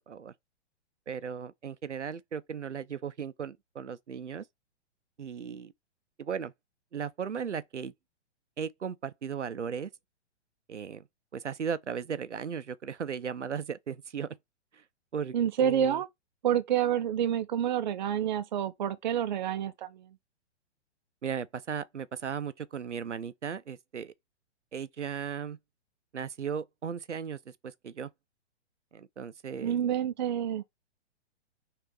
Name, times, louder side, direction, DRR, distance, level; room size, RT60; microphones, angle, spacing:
voice 1, 1.1-4.4 5.2-5.7 6.2-6.5 6.9-7.9 8.6-9.9 10.7-11.0 11.3-14.4 14.7-14.8 15.1-16.0 21.2-24.1 24.7-25.6 26.1-28.1 28.9-29.8, right 7 dB, 80° right, 0.6 m, -36 dB
voice 2, 15.3-16.1 16.4-20.0 29.6-30.6, right 9 dB, 40° right, 0.6 m, -28 dB
4.7 x 3.4 x 3.2 m
figure-of-eight pair, 120°, 35 cm